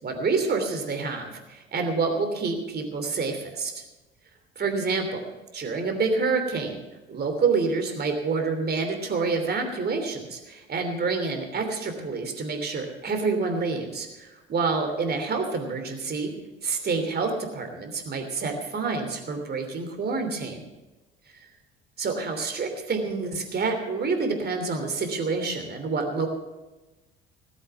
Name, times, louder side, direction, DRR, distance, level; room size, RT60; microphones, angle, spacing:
voice 1, 0.0-3.7 4.6-5.2 5.5-6.8 7.1-16.3 16.6-20.7 22.0-26.3, right 4 dB, 30° right, 5 dB, 3.1 m, -28 dB
18.0 x 8.3 x 6.9 m, 1.1 s
figure-of-eight pair, 60°, 30 cm